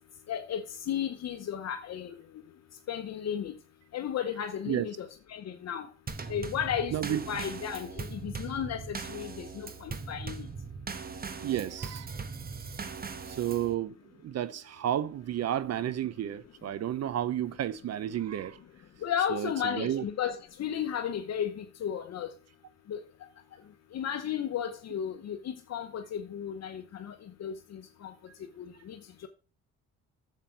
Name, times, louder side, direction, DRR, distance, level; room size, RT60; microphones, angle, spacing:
voice 1, 0.3-2.1 2.9-3.5 3.9-5.9 6.3-10.5 19.0-22.3 22.9-23.0 23.9-27.1 27.4-28.1 28.6-29.0, left 9 dB, 60° left, 0.9 m, -34 dB
Drum kit / Snare drum / Bass drum, 6.1-13.7, right 5 dB, 30° right, 1.1 m, -40 dB
voice 2, 6.9-7.2 11.4-12.1 12.8-12.9 13.3-18.6 19.3-20.1, right 11 dB, 60° right, 0.6 m, -32 dB
8.9 x 7.6 x 4.5 m
cardioid pair, 90°, 30 cm